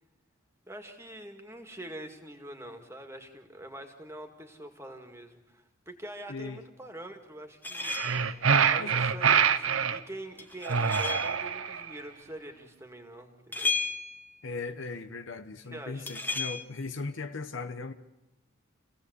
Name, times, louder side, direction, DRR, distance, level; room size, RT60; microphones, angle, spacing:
voice 1, 0.7-8.0 8.6-13.8 15.7-16.1, right 1 dB, 15° right, 2.2 m, -44 dB
voice 2, 6.3-6.6 8.8-9.0 14.4-17.9, left 3 dB, 65° left, 1.0 m, -38 dB
sound 1, 7.6-8.4 10.4-11.4 13.5-14.4 16.1-16.6, left 4 dB, 10° left, 1.4 m, -33 dB
sound 2, 7.8-10.0 10.7-11.9, right 6 dB, 75° right, 0.9 m, -25 dB
27.0 x 17.0 x 8.2 m
head